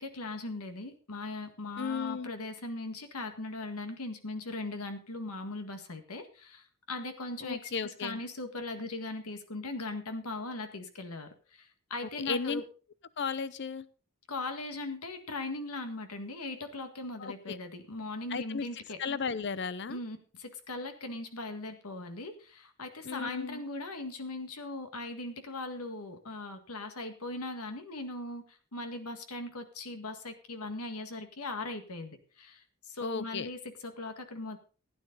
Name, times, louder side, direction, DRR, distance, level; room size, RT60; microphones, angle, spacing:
voice 1, 0.0-12.6 14.3-19.0 19.9-34.6, left 2 dB, 85° left, 7 dB, 1.7 m, -39 dB
voice 2, 1.8-2.3 7.4-8.2 12.2-12.6 13.2-13.9 17.2-17.6 18.3-18.7 19.0-20.0 23.0-23.6 33.0-33.5, left 5 dB, 50° left, 16 dB, 0.6 m, -34 dB
16.0 x 9.6 x 3.9 m, 0.37 s
head